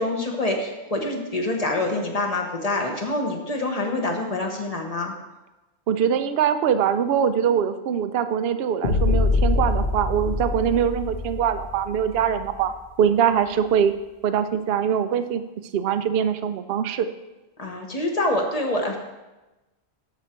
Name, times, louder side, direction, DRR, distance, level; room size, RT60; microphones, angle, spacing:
voice 1, 0.0-5.1 17.6-19.0, left 2 dB, 35° left, 1 dB, 1.2 m, -26 dB
voice 2, 5.9-12.7 13.0-13.9 14.2-15.4 15.7-17.1, right 8 dB, 70° right, 11 dB, 0.8 m, -23 dB
sound 1, 8.8-12.8, left 3 dB, 75° left, 1.6 m, -24 dB
13.0 x 4.9 x 4.4 m, 1.1 s
omnidirectional pair, 1.1 m